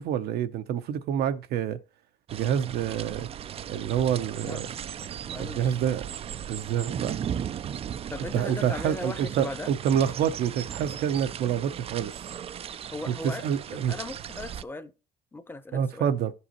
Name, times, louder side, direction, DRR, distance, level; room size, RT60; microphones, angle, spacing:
voice 1, 0.0-1.8 2.3-3.3 3.7-4.7 5.4-6.0 6.5-7.2 8.3-12.3 13.1-13.2 13.4-14.0 15.7-16.3, right 9 dB, 70° right, 0.6 m, -27 dB
sound 1, 2.3-14.6, right 9 dB, 35° right, 0.3 m, -37 dB
voice 2, 5.3-5.7 8.1-9.7 12.9-14.9 15.3-16.1, left 2 dB, 10° left, 0.7 m, -38 dB
14.5 x 5.5 x 2.8 m
cardioid pair, 110°, 17 cm